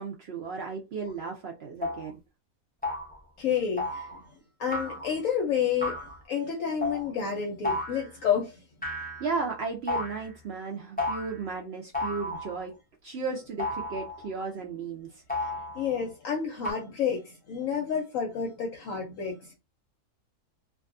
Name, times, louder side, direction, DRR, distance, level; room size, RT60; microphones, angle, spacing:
voice 1, 0.0-2.2 9.2-12.7 13.0-15.1, right 4 dB, 70° right, 0.6 m, -34 dB
sound 1, 1.1-1.2 1.8-2.1 2.8-3.2 3.8-4.2 4.7-5.2 5.8-6.2 6.8-7.1 7.6-8.1 8.8-9.4 9.9-10.3 11.0-11.5 11.9-12.6 13.6-14.3 15.3-16.0 16.6-16.7, left 2 dB, 10° left, 0.4 m, -33 dB
voice 2, 3.4-4.2 4.6-6.0 6.3-8.6 15.4-19.6, left 7 dB, 65° left, 0.9 m, -30 dB
2.6 x 2.3 x 2.4 m
omnidirectional pair, 1.6 m